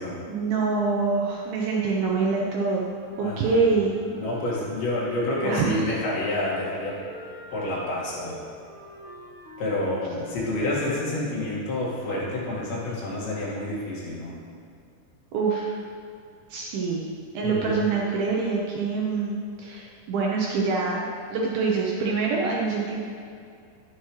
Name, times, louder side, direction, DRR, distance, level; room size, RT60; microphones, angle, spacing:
voice 1, 0.3-2.9 3.2-3.9 5.4-6.0 15.3-15.7 16.5-17.0 17.3-21.1 21.3-23.0, right 4 dB, 75° right, -2 dB, 2.3 m, -25 dB
Wind instrument woodwind instrument, 3.1-6.0 6.5-11.4, right 1 dB, 15° right, 1.6 m, -45 dB
voice 2, 3.2-3.7 4.2-7.0 7.5-8.4 9.6-14.4 17.4-17.8, left 1 dB, 75° left, -6 dB, 4.3 m, -29 dB
12.0 x 9.9 x 3.2 m, 2.5 s
omnidirectional pair, 5.1 m